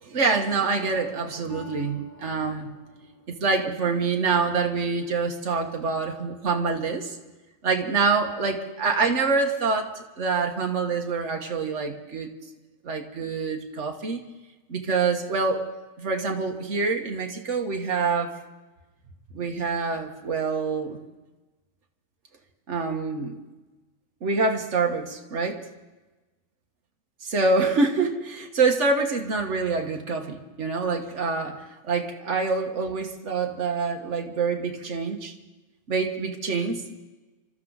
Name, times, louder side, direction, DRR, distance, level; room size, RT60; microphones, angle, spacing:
voice 1, 0.0-2.7 3.3-7.2 7.6-12.3 12.8-14.2 14.7-15.6 16.0-18.3 19.3-21.0 22.7-23.4 24.2-25.6 27.2-35.3 35.9-37.0, right 4 dB, 70° right, 3 dB, 1.7 m, -26 dB
Harp, 1.5-5.2 5.8-6.2 6.8-6.9, left 2 dB, 15° left, 1.7 m, -47 dB
25.5 x 13.5 x 4.0 m, 1.2 s
omnidirectional pair, 1.3 m